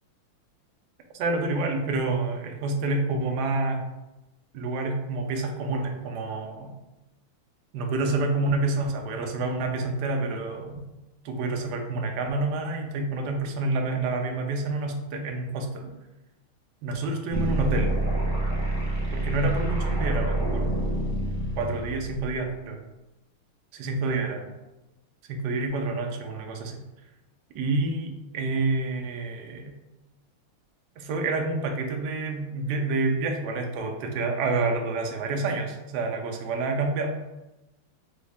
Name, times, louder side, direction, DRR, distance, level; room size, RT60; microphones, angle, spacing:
voice 1, 1.2-3.8 4.5-6.7 7.7-10.8 11.2-15.9 16.8-17.9 19.1-20.7 21.6-22.8 23.7-24.4 25.3-26.8 27.5-29.7 31.0-37.1, right 3 dB, 70° right, 3 dB, 1.0 m, -28 dB
sound 1, 17.3-22.4, right 1 dB, 30° left, 0.3 m, -27 dB
5.1 x 2.4 x 3.4 m, 1.0 s
omnidirectional pair, 2.4 m